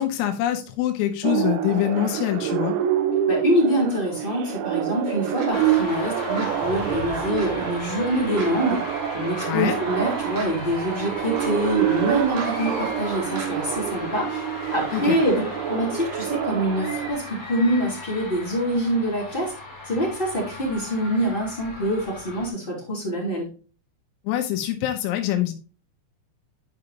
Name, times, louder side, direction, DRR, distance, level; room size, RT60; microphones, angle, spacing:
voice 1, 0.0-2.8 9.5-9.8 14.9-15.2 24.3-25.5, left 12 dB, 85° left, 5 dB, 3.6 m, -24 dB
sound 1, 1.2-17.1, right 11 dB, 80° right, 2.8 m, -27 dB
voice 2, 3.3-8.8 9.1-19.5 19.8-23.5, equal, 15° left, -4 dB, 1.8 m, -25 dB
sound 2, 5.4-5.5 6.4-6.5 7.4-7.5 8.4-8.5 9.4-9.5 10.4-10.5 11.4-11.5 12.4-12.5 13.4-13.5, right 3 dB, 55° right, 2.3 m, -36 dB
sound 3, 5.5-22.5, left 2 dB, 35° left, 3.4 m, -36 dB
11.5 x 5.3 x 2.9 m, 0.36 s
omnidirectional pair, 5.8 m